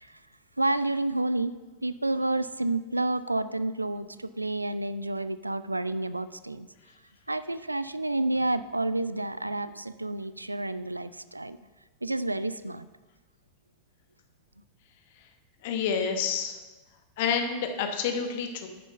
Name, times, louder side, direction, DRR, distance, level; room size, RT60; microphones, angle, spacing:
voice 1, 0.6-1.5 1.8-6.7 7.3-11.6 12.0-12.9, right 2 dB, 85° right, 15 dB, 0.3 m, -30 dB
voice 2, 15.6-16.6 17.2-18.7, left 6 dB, 50° left, 6 dB, 1.1 m, -28 dB
9.0 x 6.8 x 5.3 m, 1.2 s
figure-of-eight pair, 90°, 0 cm